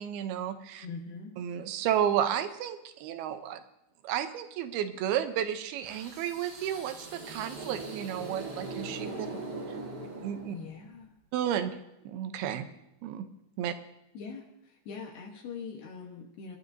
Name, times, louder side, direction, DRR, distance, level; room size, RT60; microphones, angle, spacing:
voice 1, 0.0-0.9 1.4-3.6 4.0-9.3 10.0-10.6 11.3-11.8 12.1-12.7 13.0-13.3 13.6-13.7, right 10 dB, 80° right, 9 dB, 2.7 m, -32 dB
voice 2, 0.8-1.3 9.1-9.3 10.5-11.2 14.1-16.6, left 5 dB, 75° left, 1 dB, 3.2 m, -43 dB
sound 1, 5.8-10.9, right 2 dB, 50° right, 1.2 m, -41 dB
25.0 x 12.0 x 2.7 m, 0.87 s
omnidirectional pair, 4.7 m